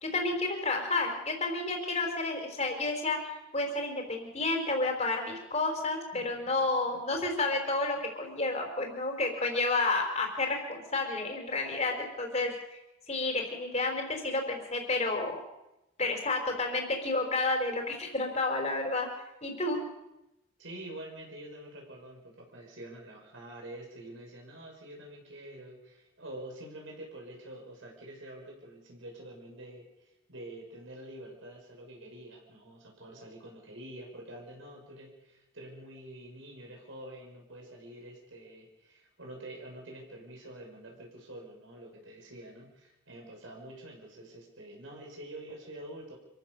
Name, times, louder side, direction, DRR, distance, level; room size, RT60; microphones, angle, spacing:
voice 1, 0.0-3.2 3.5-12.5 13.1-15.4 16.0-19.1 19.4-19.8, left 2 dB, 35° left, 3 dB, 4.8 m, -30 dB
voice 2, 20.6-46.2, right 1 dB, 75° right, 0 dB, 6.2 m, -47 dB
27.0 x 15.5 x 7.0 m, 0.93 s
head